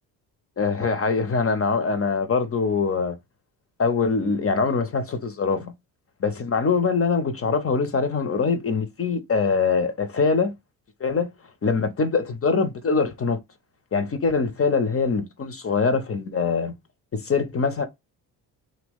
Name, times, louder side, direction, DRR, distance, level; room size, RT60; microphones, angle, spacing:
voice 1, 0.6-3.2 3.8-5.7 6.2-10.5 11.0-11.3 11.6-13.4 13.9-16.7 17.1-17.8, left 4 dB, 30° left, 0.6 m, -23 dB
2.7 x 2.6 x 3.4 m
hypercardioid pair, 50°, 47 cm